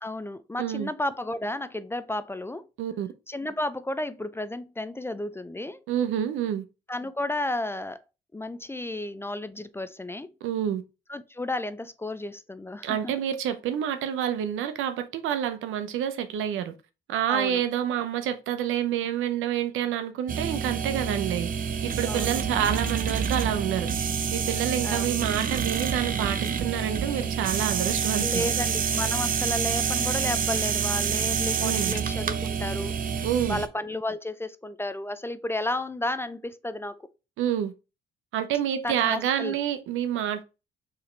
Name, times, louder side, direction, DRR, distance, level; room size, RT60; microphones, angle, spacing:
voice 1, 0.0-2.6 3.3-5.8 6.9-8.0 8.3-10.3 11.1-13.1 17.3-17.6 22.0-22.4 24.8-25.2 28.2-33.0 33.5-37.0 38.8-39.6, left 1 dB, 10° left, 0.3 m, -32 dB
voice 2, 0.6-0.9 2.8-3.1 5.9-6.6 10.4-10.8 12.8-16.7 17.1-21.5 21.8-23.9 24.3-28.5 31.6-32.0 33.2-33.6 37.4-37.7 38.3-40.4, right 10 dB, 85° right, 0.7 m, -28 dB
sound 1, 20.3-33.7, right 7 dB, 45° right, 0.6 m, -27 dB
4.7 x 3.1 x 3.2 m
cardioid pair, 90°, 20 cm